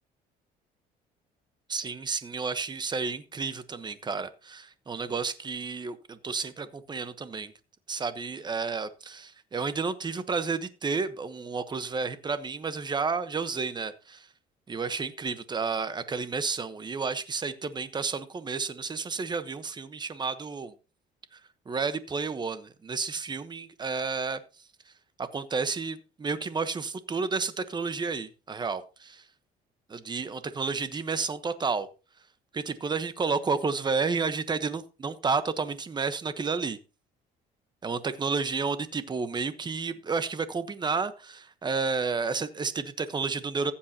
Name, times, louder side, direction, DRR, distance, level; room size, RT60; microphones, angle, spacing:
voice 1, 1.7-7.5 7.9-14.3 14.7-20.7 21.3-21.4 21.7-24.4 25.2-29.2 29.9-31.9 32.5-36.8 37.8-43.7, right 4 dB, 25° right, 1.1 m, -31 dB
15.0 x 8.5 x 2.9 m
cardioid pair, 110°, 17 cm